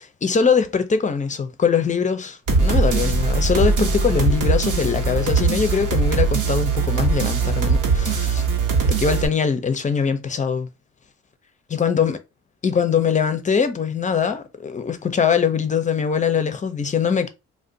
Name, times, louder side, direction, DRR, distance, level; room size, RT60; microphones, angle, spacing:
voice 1, 0.2-8.4 8.9-10.7 11.7-12.2 12.6-17.3, left 6 dB, 25° left, 0.5 m, -22 dB
sound 1, 2.5-9.3, right 4 dB, 85° right, 0.9 m, -20 dB
2.5 x 2.1 x 3.7 m
cardioid pair, 90°, 30 cm